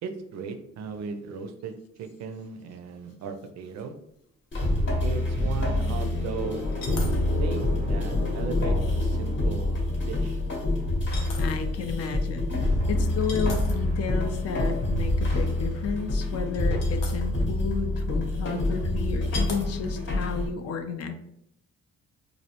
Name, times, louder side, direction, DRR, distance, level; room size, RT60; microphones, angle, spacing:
voice 1, 0.0-3.9 5.0-6.6 7.4-10.4, right 5 dB, 60° right, 7 dB, 0.4 m, -37 dB
sound 1, 3.4-3.5 3.8-3.9 6.7-7.2 7.6-7.7 9.5-9.6 11.1-11.6 13.1-13.9 16.1-16.2 16.5-17.2 18.3-18.4 19.3-19.7 20.1-20.3, left 3 dB, 85° left, 0.7 m, -39 dB
sound 2, 4.5-20.5, left 1 dB, 40° left, 0.8 m, -26 dB
sound 3, 6.4-10.7, left 1 dB, ahead, 0.5 m, -38 dB
voice 2, 11.4-21.1, left 6 dB, 55° left, 6 dB, 0.4 m, -32 dB
2.5 x 2.0 x 2.9 m, 0.75 s
cardioid pair, 90°, 30 cm